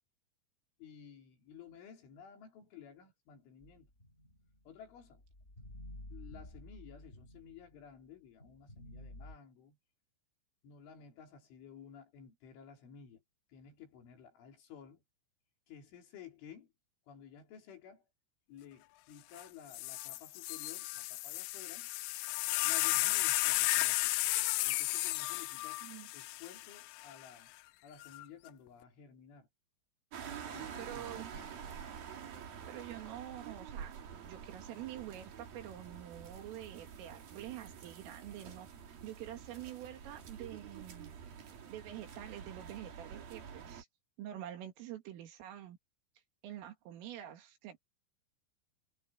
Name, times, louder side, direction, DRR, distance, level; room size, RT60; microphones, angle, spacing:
voice 1, 0.8-3.9 4.7-5.2 6.1-9.8 10.6-13.2 13.5-15.0 15.7-16.7 17.1-18.0 18.5-21.9 22.6-24.1 24.6-25.9 26.1-27.5 27.8-29.5 30.5-31.7, left 7 dB, 70° left, 6.3 m, -54 dB
sound 1, 3.6-7.9 8.4-9.4, left 1 dB, 15° left, 6.2 m, -52 dB
sound 2, 19.4-19.5 19.7-27.1 28.0-28.5, left 21 dB, 85° left, 2.6 m, -33 dB
sound 3, 30.1-43.8, right 7 dB, 50° right, 4.2 m, -48 dB
voice 2, 30.8-31.3 32.7-41.2 41.7-43.9 44.2-45.8 46.4-47.8, right 12 dB, 85° right, 5.0 m, -47 dB
omnidirectional pair, 5.7 m